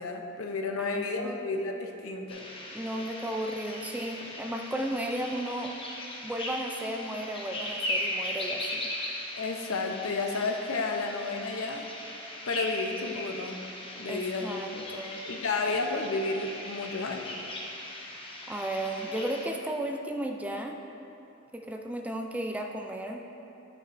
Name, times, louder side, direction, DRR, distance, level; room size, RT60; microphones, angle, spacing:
voice 1, 0.0-2.4 9.3-11.9 12.5-13.7 13.9-14.8 15.2-17.3, left 3 dB, 85° left, 3 dB, 0.7 m, -32 dB
voice 2, 0.8-1.4 2.7-5.8 6.2-8.9 14.1-15.2 18.5-20.8 21.5-23.2, right 1 dB, 5° right, 2 dB, 0.3 m, -34 dB
sound 1, 2.3-19.5, left 1 dB, 25° left, 0.8 m, -38 dB
11.0 x 6.0 x 2.6 m, 2.9 s
head